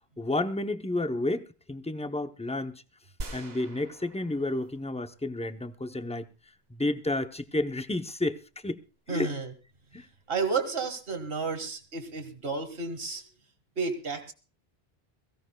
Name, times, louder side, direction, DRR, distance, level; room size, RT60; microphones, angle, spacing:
voice 1, 0.2-2.8 3.3-6.3 6.7-8.4 8.6-8.8 9.1-9.3 9.9-10.1, left 2 dB, 10° left, 0.5 m, -31 dB
sound 1, 3.2-5.5, right 2 dB, 45° right, 1.1 m, -43 dB
voice 2, 9.1-9.5 10.3-13.2 13.8-14.3, right 4 dB, 65° right, 2.0 m, -31 dB
22.5 x 16.0 x 2.2 m
omnidirectional pair, 1.0 m